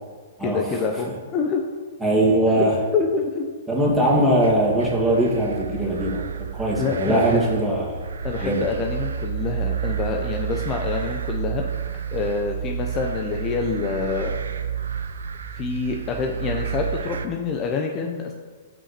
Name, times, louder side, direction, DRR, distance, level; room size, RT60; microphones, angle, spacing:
voice 1, 0.4-1.6 2.6-2.7 2.9-3.5 6.8-7.4 8.2-11.6 12.1-14.4 15.5-18.3, left 5 dB, 30° left, 2 dB, 0.8 m, -26 dB
voice 2, 2.0-2.7 3.7-8.0 8.4-8.6, right 1 dB, 5° right, -5 dB, 2.4 m, -21 dB
sound 1, 4.0-17.3, right 8 dB, 80° right, 0.6 m, -30 dB
5.8 x 5.3 x 6.8 m, 1.5 s
hypercardioid pair, 130°, 0 cm